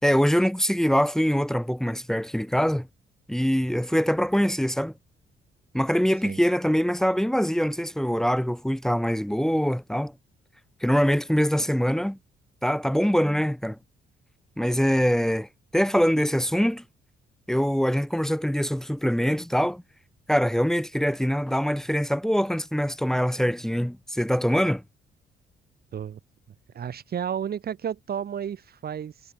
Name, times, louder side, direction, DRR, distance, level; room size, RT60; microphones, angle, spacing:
voice 1, 0.0-2.9 3.3-4.9 5.7-10.1 10.8-12.2 12.6-13.8 14.6-16.8 17.5-19.8 20.3-24.8, equal, ahead, 1.6 m, -23 dB
voice 2, 26.7-29.3, right 8 dB, 50° right, 1.3 m, -32 dB
cardioid pair, 90°, 20 cm